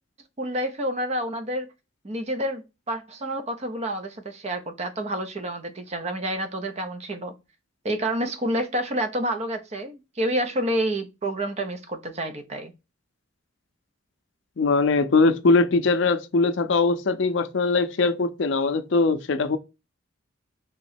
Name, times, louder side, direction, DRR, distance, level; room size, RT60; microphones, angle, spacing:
voice 1, 0.4-1.7 2.0-7.3 7.8-12.7, right 1 dB, 35° right, 0.6 m, -29 dB
voice 2, 14.6-19.6, left 3 dB, 60° left, 0.5 m, -21 dB
3.7 x 3.0 x 4.2 m
head